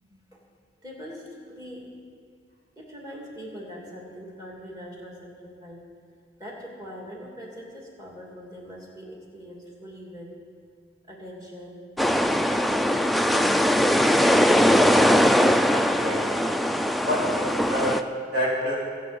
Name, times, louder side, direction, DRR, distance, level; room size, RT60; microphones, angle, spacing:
voice 1, 0.0-0.4 0.8-1.9 2.8-5.8 6.4-10.3 11.1-12.5 13.3-13.7 14.3-14.6, equal, 20° right, -2 dB, 2.7 m, -42 dB
sound 1, 12.0-18.0, equal, ahead, 0.3 m, -20 dB
voice 2, 15.6-16.5 17.0-18.0 18.3-18.8, equal, 60° right, -5 dB, 3.8 m, -28 dB
22.5 x 7.5 x 5.3 m, 2.1 s
head